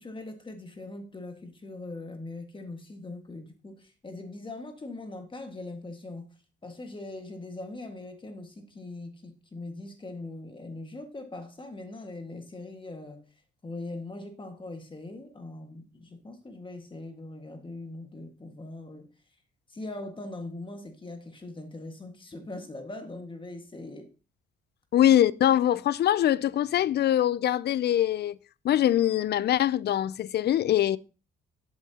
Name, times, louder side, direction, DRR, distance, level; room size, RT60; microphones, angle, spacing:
voice 1, 0.0-6.3 6.6-13.2 13.6-19.1 19.7-24.1, left 2 dB, 25° left, 1.7 m, -41 dB
voice 2, 24.9-28.4 28.6-31.0, left 11 dB, 55° left, 0.4 m, -23 dB
11.5 x 7.5 x 2.8 m
cardioid pair, 90°, 20 cm